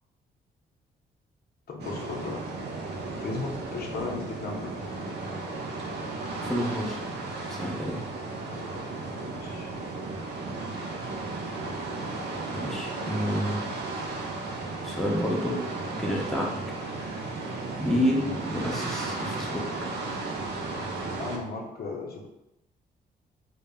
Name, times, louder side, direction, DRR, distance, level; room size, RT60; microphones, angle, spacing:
voice 1, 1.7-2.4 3.1-4.9 9.2-9.7 21.1-22.3, left 3 dB, 55° left, 0 dB, 0.5 m, -36 dB
sound 1, 1.8-21.4, right 3 dB, 65° right, 0.5 m, -35 dB
voice 2, 6.4-7.0 7.5-8.0 12.5-13.6 13.9-14.2 14.8-15.6 15.9-16.5 16.9-17.1 17.8-19.6 20.1-20.4, equal, ahead, -2 dB, 0.7 m, -29 dB
2.1 x 2.0 x 3.5 m, 0.88 s
supercardioid pair, 65°, 19 cm